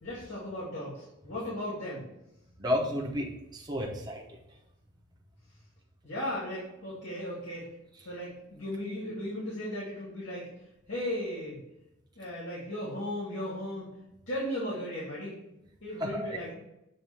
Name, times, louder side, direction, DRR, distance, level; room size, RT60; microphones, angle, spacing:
voice 1, 0.0-2.0 6.0-7.7 8.0-10.5 10.9-11.6 12.2-13.8 14.3-15.3 15.8-16.5, left 1 dB, 80° left, -7 dB, 2.1 m, -36 dB
voice 2, 2.6-4.4 16.0-16.4, left 1 dB, 20° right, -2 dB, 0.9 m, -32 dB
7.8 x 2.7 x 5.5 m, 0.88 s
head